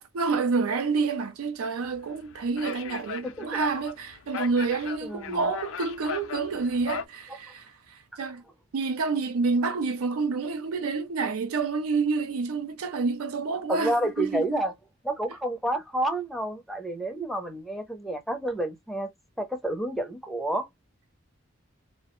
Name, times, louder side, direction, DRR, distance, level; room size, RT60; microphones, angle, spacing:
voice 1, 0.0-8.4 8.7-14.6, right 4 dB, 90° right, 0.4 m, -28 dB
sound 1, 1.8-7.0, left 8 dB, 70° left, 0.4 m, -38 dB
voice 2, 3.2-3.6 5.0-5.5 13.7-14.7 15.0-19.1 19.4-20.7, right 1 dB, ahead, 0.4 m, -30 dB
2.3 x 2.1 x 2.9 m
head